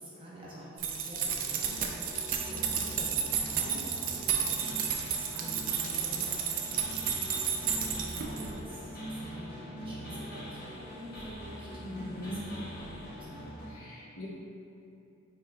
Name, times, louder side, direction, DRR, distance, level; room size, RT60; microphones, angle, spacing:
voice 1, 0.0-12.6 13.2-13.4, equal, 25° right, -7 dB, 0.8 m, -47 dB
sound 1, 0.8-8.5, right 7 dB, 40° right, 0.3 m, -32 dB
sound 2, 1.6-13.7, equal, 45° left, 1.0 m, -43 dB
voice 2, 11.8-12.4 13.6-14.3, left 1 dB, 85° left, -6 dB, 1.1 m, -41 dB
5.1 x 3.6 x 2.2 m, 2.9 s
head